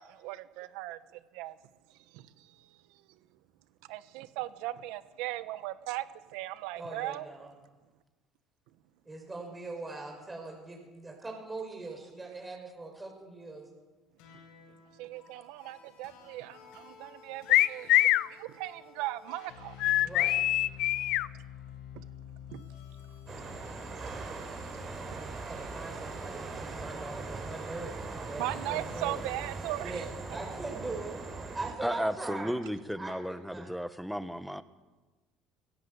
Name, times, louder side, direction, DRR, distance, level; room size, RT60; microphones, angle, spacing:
voice 1, 0.0-1.6 2.1-3.0 3.9-6.1 6.3-7.3 15.0-19.9 21.9-22.0 22.5-22.7 25.0-25.2 28.4-30.0, right 16 dB, 80° right, 14 dB, 1.2 m, -38 dB
voice 2, 6.8-7.5 9.0-13.7 20.0-20.4 25.0-29.2 29.8-31.2 31.5-32.6 33.0-33.1 33.4-33.7, right 3 dB, 15° right, 1 dB, 6.3 m, -41 dB
sound 1, 14.2-26.7, left 9 dB, 85° left, 5.7 m, -51 dB
sound 2, 17.5-18.3 19.8-21.3, left 15 dB, 65° left, 0.5 m, -24 dB
sound 3, 23.3-31.7, right 3 dB, 35° right, 5.9 m, -40 dB
voice 3, 31.8-34.6, equal, ahead, 12 dB, 1.2 m, -34 dB
19.0 x 17.0 x 8.2 m, 1.2 s
cardioid pair, 110°, 0 cm